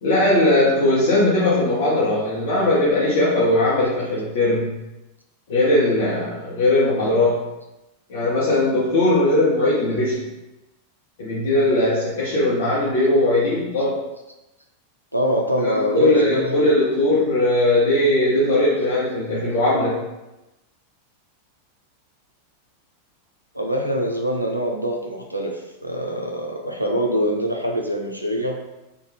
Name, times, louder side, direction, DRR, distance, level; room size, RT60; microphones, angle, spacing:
voice 1, 0.0-4.8 5.5-7.4 8.1-10.2 11.2-14.0 15.6-20.0, left 1 dB, 55° left, -7 dB, 0.7 m, -19 dB
voice 2, 15.1-16.5 23.5-28.6, equal, 90° right, 1 dB, 0.4 m, -24 dB
2.9 x 2.2 x 2.6 m, 0.99 s
figure-of-eight pair, 90°, 0 cm